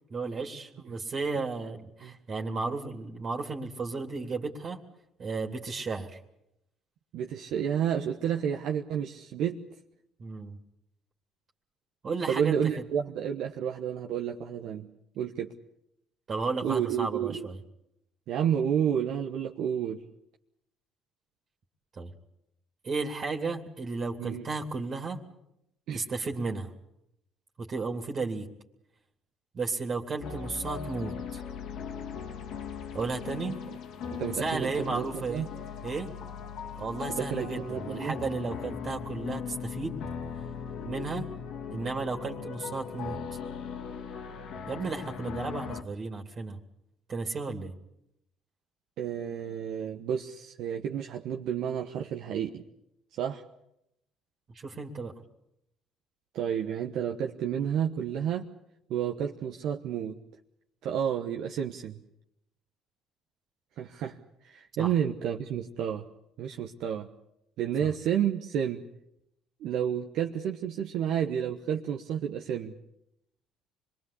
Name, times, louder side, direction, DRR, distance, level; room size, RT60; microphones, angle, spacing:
voice 1, 0.1-4.8 5.2-6.2 10.2-10.6 12.0-12.6 16.3-17.6 22.0-22.1 22.8-25.2 25.9-26.7 27.6-28.5 29.5-31.4 32.9-33.6 34.3-35.4 35.8-36.1 36.6-40.0 40.8-41.3 41.7-43.4 44.7-46.6 47.1-47.7 54.5-55.1 64.8-64.9 67.8-67.9, right 3 dB, 45° right, 3 dB, 2.7 m, -34 dB
voice 2, 7.1-9.6 12.3-14.9 15.2-15.5 16.6-17.5 18.3-20.0 24.2-24.5 25.9-26.1 34.1-35.5 37.1-38.2 49.0-52.6 53.1-53.4 56.3-58.5 58.9-60.2 60.8-62.0 63.8-64.2 64.4-66.0 66.4-67.1 67.6-68.8 69.6-72.7, right 9 dB, 65° right, 3 dB, 1.2 m, -30 dB
sound 1, 30.2-45.8, left 7 dB, 65° left, 2.0 m, -39 dB
26.0 x 21.5 x 8.4 m, 0.83 s
hypercardioid pair, 60°, 0 cm